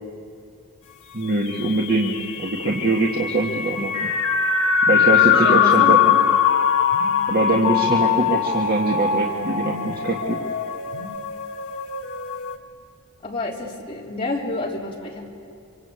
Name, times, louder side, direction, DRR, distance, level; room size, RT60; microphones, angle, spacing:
voice 1, 1.1-3.9 4.9-6.2 7.3-10.4, right 2 dB, 45° right, -2 dB, 1.9 m, -23 dB
sound 1, 1.5-12.6, left 7 dB, 65° left, 1.3 m, -21 dB
Telephone, 4.9-6.0 6.9-8.0 8.9-10.0 10.9-11.2, left 4 dB, 80° left, 2.0 m, -37 dB
voice 2, 5.3-6.0 13.2-15.3, left 2 dB, 25° left, -3 dB, 3.3 m, -28 dB
26.0 x 25.5 x 8.4 m, 2.5 s
head